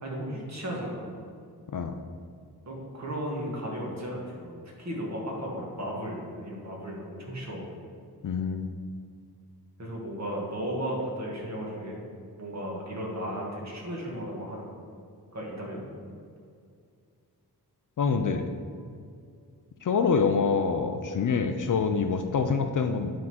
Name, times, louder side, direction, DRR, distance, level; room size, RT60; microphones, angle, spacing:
voice 1, 0.0-1.1 2.6-7.8 9.8-12.0 12.4-14.7 15.3-15.9, equal, 45° right, -3 dB, 1.7 m, -35 dB
voice 2, 8.2-8.7 18.0-18.5 19.8-23.1, left 5 dB, 55° left, 7 dB, 0.5 m, -26 dB
9.5 x 3.7 x 6.1 m, 2.3 s
wide cardioid pair, 180°, 39 cm